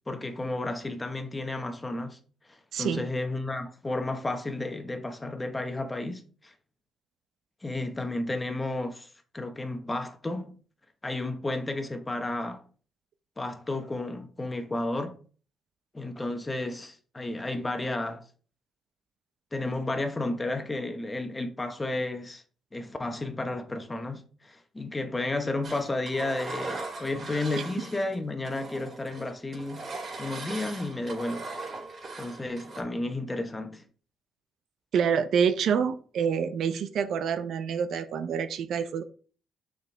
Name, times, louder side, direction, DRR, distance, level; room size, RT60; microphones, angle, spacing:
voice 1, 0.1-2.2 2.5-6.5 7.6-10.5 11.0-12.6 13.4-15.2 15.9-18.2 19.5-22.4 22.7-29.9 30.2-31.5 32.2-33.8, left 2 dB, 20° left, 1.2 m, -32 dB
voice 2, 2.7-3.1 34.9-39.0, right 7 dB, 70° right, 0.7 m, -27 dB
Engine, 25.6-28.2 28.4-32.8, right 3 dB, 45° right, 2.5 m, -39 dB
6.7 x 5.2 x 3.5 m
cardioid pair, 90°, 0 cm